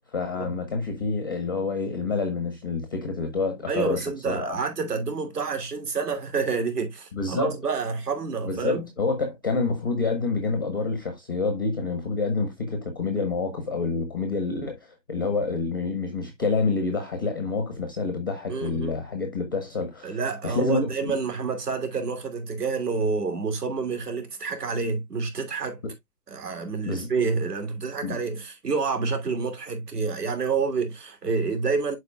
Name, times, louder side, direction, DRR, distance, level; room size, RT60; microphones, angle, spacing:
voice 1, 0.1-4.6 7.1-7.5 8.4-14.8 15.1-20.2 20.4-21.1 25.8-25.9 26.9-27.1 28.0-28.2, left 4 dB, 15° left, 0.5 m, -28 dB
voice 2, 3.7-8.9 18.5-19.0 20.0-25.8 26.3-32.0, right 4 dB, 70° right, 2.9 m, -28 dB
11.0 x 4.2 x 2.2 m
hypercardioid pair, 145°, 50 cm